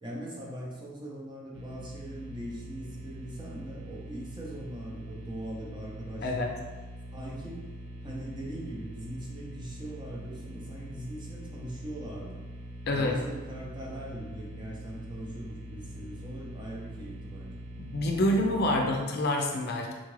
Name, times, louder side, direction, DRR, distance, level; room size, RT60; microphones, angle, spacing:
voice 1, 0.0-6.5 7.1-7.6 8.0-12.4 12.9-17.6, right 1 dB, 25° right, -4 dB, 0.7 m, -41 dB
sound 1, 1.5-18.8, right 1 dB, 75° right, 0.4 m, -43 dB
voice 2, 17.8-19.9, left 1 dB, 55° left, 1 dB, 0.4 m, -27 dB
3.8 x 2.4 x 3.1 m, 1.2 s
head